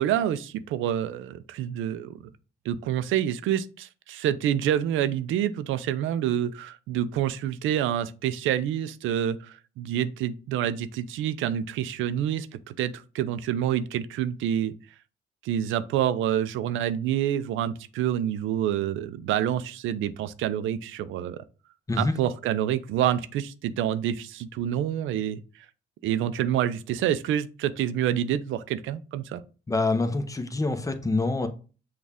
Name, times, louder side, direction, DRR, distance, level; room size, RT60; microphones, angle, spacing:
voice 1, 0.0-2.2 2.7-14.7 15.4-21.4 22.0-25.4 26.0-29.4, right 10 dB, 85° right, 0.4 m, -27 dB
voice 2, 29.7-31.5, left 2 dB, 15° left, 0.7 m, -26 dB
6.3 x 2.4 x 3.5 m
cardioid pair, 90°, 20 cm